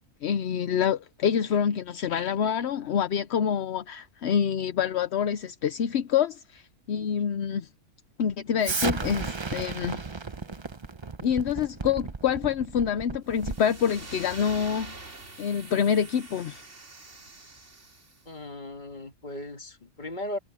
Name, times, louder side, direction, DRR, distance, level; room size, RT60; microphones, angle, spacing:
voice 1, 0.2-7.7 8.2-10.0 11.2-14.9 15.4-16.6, left 8 dB, 55° left, 0.8 m, -27 dB
Explosion, 8.6-13.8, right 4 dB, 30° right, 0.6 m, -34 dB
sound 1, 13.3-18.2, right 3 dB, 50° right, 3.3 m, -45 dB
voice 2, 18.3-20.4, left 1 dB, 30° left, 2.1 m, -37 dB
omnidirectional pair, 1.6 m